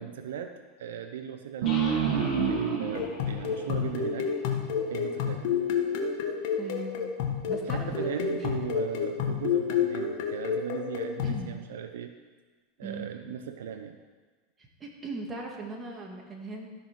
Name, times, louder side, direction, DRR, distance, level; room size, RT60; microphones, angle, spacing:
voice 1, 0.0-4.3 4.9-5.5 7.7-12.1 12.8-14.0, right 9 dB, 90° right, 8 dB, 0.7 m, -38 dB
sound 1, 1.6-5.3, left 4 dB, 35° left, 1.6 m, -45 dB
sound 2, 1.6-4.8, right 6 dB, 70° right, 1.4 m, -29 dB
sound 3, 2.9-11.4, left 7 dB, 65° left, 1.3 m, -30 dB
voice 2, 6.6-7.0 7.5-8.7 11.2-11.5 12.8-13.2 14.6-16.7, right 3 dB, 20° right, 0 dB, 2.0 m, -39 dB
13.0 x 5.5 x 6.0 m, 1.4 s
supercardioid pair, 125°, 0 cm